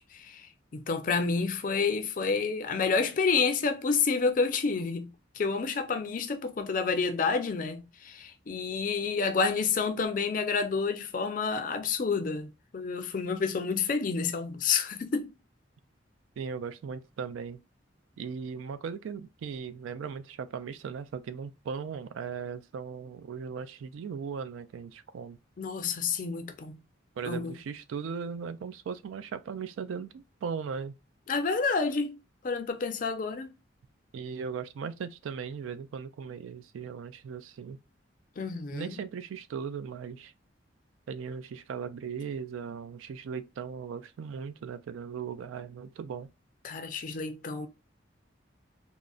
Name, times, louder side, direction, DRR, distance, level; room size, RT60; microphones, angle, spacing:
voice 1, 0.0-15.3 25.6-26.8 27.3-27.6 31.3-33.5 38.4-39.0 46.6-47.7, left 5 dB, 45° left, 0.4 m, -29 dB
voice 2, 16.4-17.6 18.2-25.4 27.2-30.9 34.1-37.8 38.7-40.3 41.1-46.3, right 6 dB, 85° right, 0.3 m, -38 dB
3.7 x 2.0 x 2.3 m
head